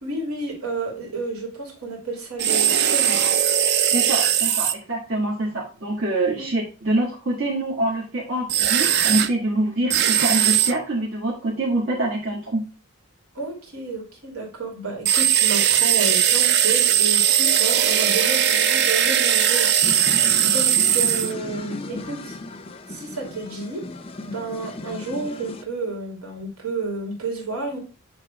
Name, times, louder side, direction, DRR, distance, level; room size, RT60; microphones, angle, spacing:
voice 1, 0.0-3.2 6.4-6.5 13.3-22.4 22.9-23.8 24.2-27.8, right 3 dB, 90° right, -1 dB, 2.9 m, -31 dB
sound 1, 2.4-4.7 8.5-9.3 9.9-10.7 15.0-21.3, right 9 dB, 50° right, 0.5 m, -19 dB
voice 2, 3.9-12.6, right 1 dB, 65° right, -6 dB, 2.0 m, -25 dB
sound 2, 19.8-25.6, left 2 dB, 25° left, 0.5 m, -35 dB
8.0 x 3.3 x 4.9 m, 0.35 s
head